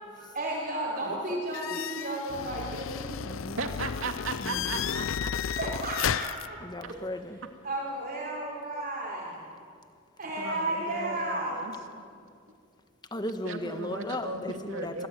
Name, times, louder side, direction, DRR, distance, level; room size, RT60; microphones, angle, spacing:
voice 1, 0.1-3.2 5.5-6.6 6.8-7.0 7.3-9.5 10.2-11.6, right 1 dB, 45° right, -5 dB, 5.2 m, -33 dB
voice 2, 1.1-1.4 3.2-3.6 4.4-4.7 6.7-7.4 13.1-15.1, left 1 dB, 20° left, 8 dB, 1.4 m, -36 dB
sound 1, 1.5-6.5, left 7 dB, 80° left, 0.5 m, -33 dB
voice 3, 3.6-5.3 10.4-12.1 13.4-15.1, right 3 dB, 90° right, 5 dB, 2.5 m, -37 dB
26.0 x 19.5 x 9.6 m, 2.3 s
head